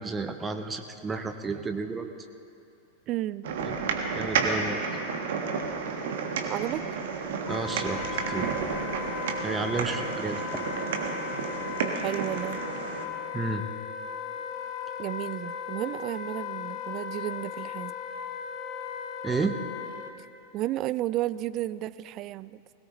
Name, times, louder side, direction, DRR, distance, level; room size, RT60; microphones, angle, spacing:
voice 1, 0.0-2.1 3.6-3.8 4.1-4.8 7.5-8.6 9.4-10.6 13.3-13.6 19.2-19.6, right 4 dB, 15° right, 6 dB, 0.8 m, -31 dB
voice 2, 3.1-3.4 6.5-6.8 11.8-12.6 15.0-17.9 20.5-22.6, right 15 dB, 35° right, 17 dB, 0.3 m, -32 dB
sound 1, 3.4-13.0, right 5 dB, 55° right, 1.4 m, -31 dB
Wind instrument woodwind instrument, 7.5-20.1, left 7 dB, 35° left, 1.2 m, -37 dB
20.5 x 17.5 x 3.0 m, 2.5 s
figure-of-eight pair, 90°, 0 cm